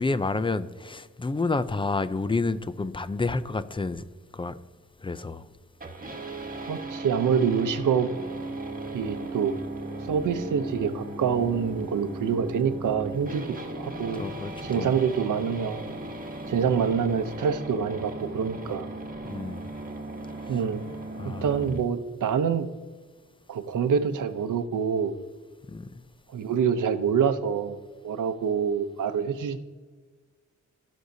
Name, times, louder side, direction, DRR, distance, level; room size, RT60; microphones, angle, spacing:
voice 1, 0.0-4.0 4.3-4.6 5.0-5.4 14.1-14.9 19.3-19.6 20.4-20.6 21.1-21.5 25.7-25.9, left 3 dB, 15° left, 0.4 m, -29 dB
sound 1, 5.8-21.8, right 2 dB, 30° right, 1.4 m, -37 dB
voice 2, 6.7-8.1 8.9-9.6 10.1-13.5 13.7-14.2 14.6-15.9 16.5-18.9 20.5-20.8 21.4-22.7 23.5-25.1 26.3-27.8 28.0-29.6, right 7 dB, 85° right, 0.8 m, -26 dB
16.0 x 6.3 x 2.7 m
wide cardioid pair, 100°, 30 cm